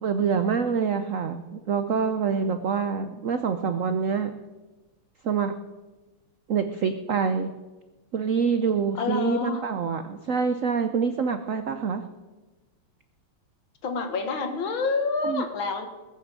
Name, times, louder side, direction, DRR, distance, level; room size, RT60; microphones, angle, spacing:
voice 1, 0.0-4.3 5.2-5.5 6.5-7.5 8.1-12.0 15.2-15.4, right 6 dB, 85° right, 9 dB, 0.7 m, -26 dB
voice 2, 8.9-9.6 13.8-15.9, left 4 dB, 70° left, 6 dB, 2.3 m, -28 dB
20.5 x 7.2 x 7.6 m, 1.2 s
omnidirectional pair, 2.4 m